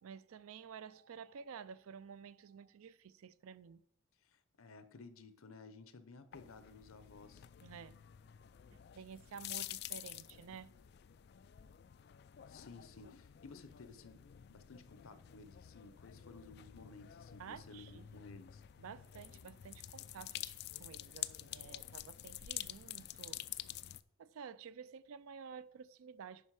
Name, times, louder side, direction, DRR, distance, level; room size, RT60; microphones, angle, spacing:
voice 1, 0.0-3.8 7.6-8.0 8.7-10.7 17.4-18.2 18.8-23.4 24.2-26.5, right 6 dB, 85° right, 0.4 m, -52 dB
voice 2, 4.3-7.4 12.5-14.2 14.5-18.6, left 3 dB, 85° left, 0.8 m, -56 dB
sound 1, 6.3-24.0, left 13 dB, 50° left, 0.3 m, -49 dB
9.5 x 5.4 x 4.8 m
head